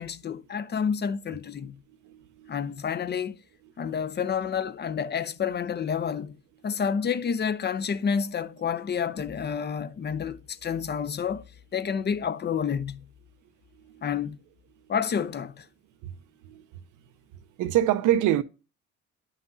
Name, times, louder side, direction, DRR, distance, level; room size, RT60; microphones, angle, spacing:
voice 1, 0.0-1.8 2.5-3.4 3.8-11.4 11.7-13.1 14.0-14.4 14.9-15.7, left 7 dB, 35° left, 0.5 m, -29 dB
voice 2, 2.0-2.6 13.8-14.1 16.0-16.1 16.4-16.7 17.6-18.4, right 12 dB, 85° right, 0.6 m, -25 dB
9.4 x 5.7 x 2.6 m
cardioid pair, 90°, 30 cm